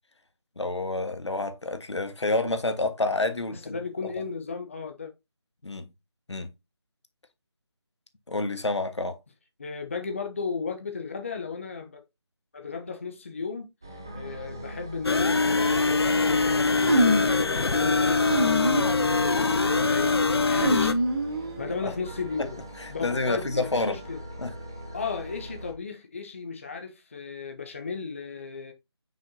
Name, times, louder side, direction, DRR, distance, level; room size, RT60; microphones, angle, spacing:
voice 1, 0.6-3.8 5.6-5.9 6.3-6.5 8.3-9.2 21.8-21.9 22.4-22.5 22.8-24.0 24.4-24.5, left 2 dB, 90° left, 1.5 m, -28 dB
voice 2, 3.5-5.1 9.6-12.0 12.5-21.0 21.6-22.6 22.9-24.2 24.9-28.7, left 5 dB, 30° left, 0.7 m, -35 dB
sound 1, 13.8-25.7, right 1 dB, 10° right, 0.5 m, -41 dB
sound 2, 15.0-20.9, left 3 dB, 65° left, 0.7 m, -23 dB
sound 3, 16.8-17.4 18.2-18.9 19.3-19.7 20.5-21.7, equal, 50° right, 2.6 m, -26 dB
6.0 x 5.8 x 2.7 m
figure-of-eight pair, 170°, 14 cm